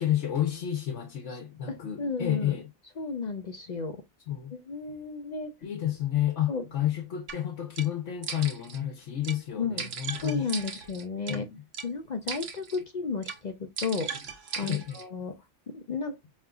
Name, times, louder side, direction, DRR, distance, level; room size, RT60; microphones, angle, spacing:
voice 1, 0.0-2.7 4.3-4.5 5.6-10.5 11.3-11.6 14.6-15.0, left 11 dB, 75° left, 1.1 m, -30 dB
voice 2, 1.7-2.6 3.0-4.0 4.5-5.5 6.5-6.6 9.6-9.8 10.2-11.5 11.8-15.4 15.7-16.2, left 4 dB, 50° left, 0.5 m, -33 dB
sound 1, 7.3-7.4 7.8-7.9 8.2-8.8 9.2-9.4 9.8-11.4 11.7-11.9 12.3-12.8 13.2-13.4 13.8-15.0, right 6 dB, 80° right, 1.2 m, -37 dB
5.0 x 3.1 x 2.2 m
omnidirectional pair, 1.2 m